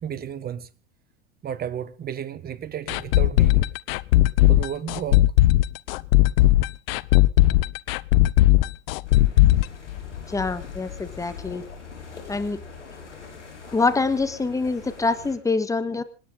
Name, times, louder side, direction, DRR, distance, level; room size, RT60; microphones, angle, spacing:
voice 1, 0.0-0.7 1.4-3.7 4.5-5.3, right 9 dB, 25° right, 1.4 m, -33 dB
sound 1, 2.9-10.6 10.9-11.0 11.4-11.5, left 17 dB, 55° left, 0.8 m, -18 dB
sound 2, 9.0-15.4, left 5 dB, 90° left, 5.4 m, -42 dB
voice 2, 10.3-11.6 12.3-12.6 13.7-16.0, left 3 dB, 10° left, 1.7 m, -25 dB
27.0 x 9.8 x 3.9 m
hypercardioid pair, 95°, 34 cm